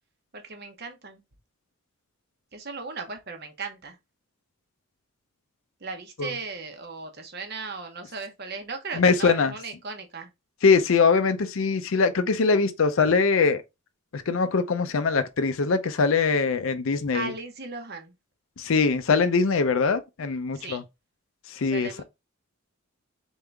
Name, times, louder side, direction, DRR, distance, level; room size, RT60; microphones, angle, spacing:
voice 1, 0.3-1.2 2.5-4.0 5.8-10.3 17.1-18.1 20.5-20.8 21.7-22.0, right 4 dB, 45° right, 1.0 m, -37 dB
voice 2, 9.0-9.5 10.6-13.6 14.1-17.3 18.6-20.8 21.5-22.0, left 4 dB, 65° left, 0.5 m, -22 dB
3.9 x 3.6 x 3.4 m
head